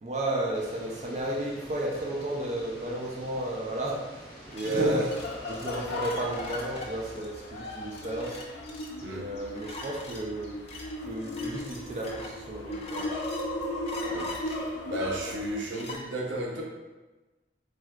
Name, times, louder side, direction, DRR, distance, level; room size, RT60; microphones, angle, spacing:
voice 1, 0.0-4.0 4.5-5.1 5.5-8.4 9.0-10.5 11.1-13.1, right 1 dB, 40° right, -2 dB, 0.4 m, -33 dB
sound 1, 0.5-7.2, right 1 dB, 60° right, 1.4 m, -48 dB
sound 2, 4.5-16.0, left 2 dB, 35° left, 0.4 m, -43 dB
voice 2, 4.6-5.1 9.0-9.3 14.1-14.6 14.9-16.6, right 1 dB, 90° right, -1 dB, 0.5 m, -31 dB
sound 3, 5.1-15.6, left 1 dB, 85° left, 0.6 m, -37 dB
3.3 x 2.7 x 2.2 m, 1.2 s
head